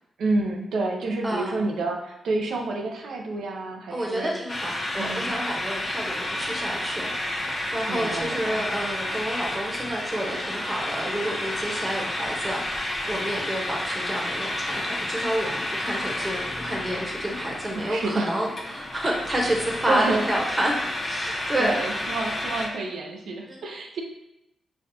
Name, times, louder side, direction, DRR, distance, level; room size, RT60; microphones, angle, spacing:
voice 1, 0.2-4.3 5.0-5.3 7.9-8.6 17.7-18.3 19.0-19.2 19.9-20.3 21.6-24.0, right 2 dB, 80° right, 1 dB, 0.6 m, -29 dB
voice 2, 1.2-1.6 3.9-20.7 21.0-21.8 23.5-23.6, right 1 dB, 25° right, -2 dB, 1.1 m, -29 dB
sound 1, 4.5-22.7, left 1 dB, 35° left, 1.0 m, -31 dB
5.3 x 2.3 x 2.8 m, 0.84 s
cardioid pair, 60°, 0 cm